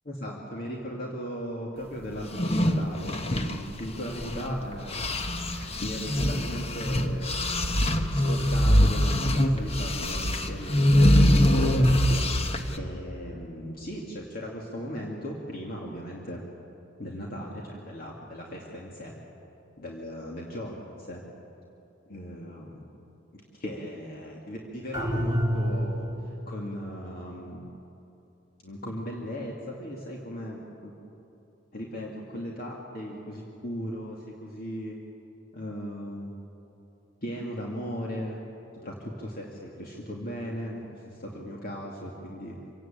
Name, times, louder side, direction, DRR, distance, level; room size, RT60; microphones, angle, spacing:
voice 1, 0.0-5.2 5.5-7.4 8.1-16.4 17.0-19.1 19.8-21.2 22.1-22.8 23.3-27.6 28.6-29.5 29.8-30.9 31.7-35.0 35.5-36.4 37.2-38.4 38.8-42.6, equal, 50° left, -2 dB, 2.3 m, -37 dB
sound 1, 2.2-4.6 4.9-12.8, equal, 35° left, 1.2 m, -23 dB
sound 2, 24.9-26.4, equal, 20° right, 2.3 m, -28 dB
25.5 x 17.5 x 8.9 m, 2.9 s
head